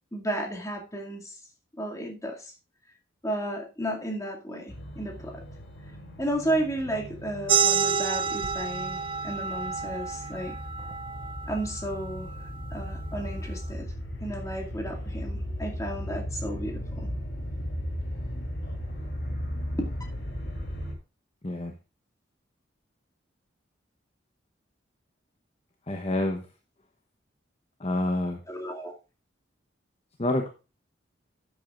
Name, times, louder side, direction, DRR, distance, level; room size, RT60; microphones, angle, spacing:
voice 1, 0.1-1.4 1.8-2.5 3.2-5.4 6.2-10.6 11.5-12.3 12.7-13.9 14.2-17.2 19.8-19.9 28.5-28.9, right 1 dB, 15° left, 1 dB, 2.4 m, -33 dB
sound 1, 4.7-20.9, equal, 65° left, 3.0 m, -36 dB
sound 2, 7.5-12.7, right 6 dB, 25° right, 0.4 m, -29 dB
voice 2, 25.9-26.4 27.8-28.4 30.2-30.5, left 1 dB, 35° left, 5 dB, 1.0 m, -27 dB
12.5 x 8.4 x 2.5 m, 0.31 s
head